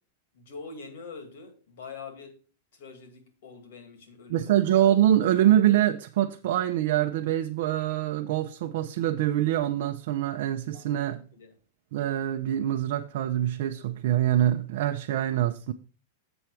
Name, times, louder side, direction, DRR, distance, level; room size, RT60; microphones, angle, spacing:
voice 1, 0.3-2.4 2.7-4.5 10.7-11.1 11.3-11.6, left 4 dB, 65° left, 2.3 m, -44 dB
voice 2, 4.3-11.2 11.9-15.7, right 12 dB, 50° right, 0.6 m, -24 dB
7.9 x 5.8 x 4.8 m
supercardioid pair, 175°, 0 cm